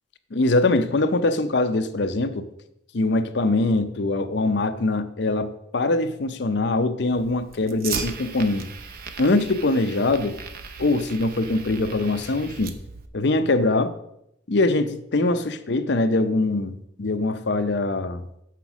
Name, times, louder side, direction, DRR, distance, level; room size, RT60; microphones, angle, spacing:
voice 1, 0.3-2.5 2.9-8.7 9.2-10.4 10.8-12.7 13.1-13.9 14.5-18.4, left 2 dB, 55° left, 9 dB, 0.6 m, -23 dB
Fire, 7.1-13.1, right 5 dB, 45° right, 0.7 m, -37 dB
7.1 x 5.9 x 5.9 m, 0.79 s
head